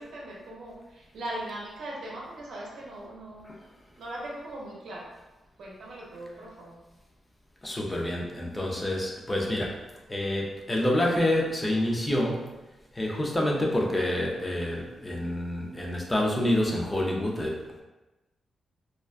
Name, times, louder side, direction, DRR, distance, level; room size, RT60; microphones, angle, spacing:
voice 1, 0.0-3.6 4.0-5.1 5.6-6.8, right 1 dB, 75° right, -3 dB, 0.6 m, -40 dB
voice 2, 7.6-9.8 10.1-12.5 12.9-17.8, left 1 dB, 15° left, -1 dB, 0.4 m, -28 dB
2.4 x 2.1 x 2.4 m, 1.1 s
cardioid pair, 120°, 0 cm